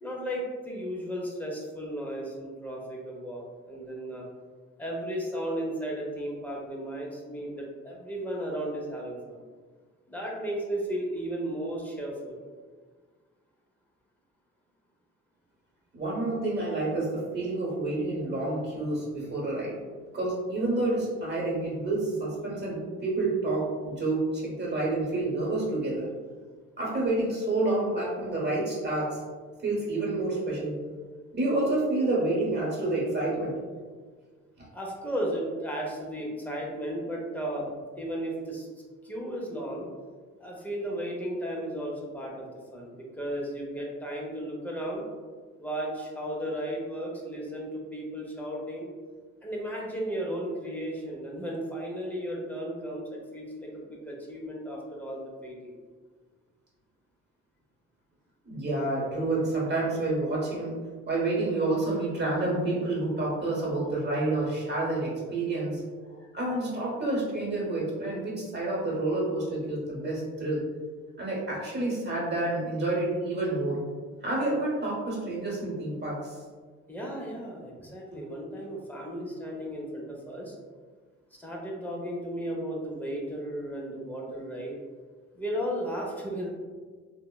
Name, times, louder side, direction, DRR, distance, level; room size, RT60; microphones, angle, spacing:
voice 1, 0.0-4.3 4.8-9.4 10.1-12.4 34.7-37.7 38.0-38.7 39.0-39.9 40.4-45.0 45.6-48.9 49.4-55.7 76.9-80.6 81.4-84.8 85.3-86.5, equal, 5° left, -3 dB, 0.7 m, -34 dB
voice 2, 15.9-19.8 20.1-26.1 26.8-29.2 29.6-30.8 31.3-33.6 34.6-34.7 58.4-60.8 61.1-70.6 71.2-73.8 74.2-76.4, right 2 dB, 35° right, -5 dB, 1.2 m, -29 dB
3.4 x 2.1 x 2.2 m, 1.5 s
cardioid pair, 90°, 30 cm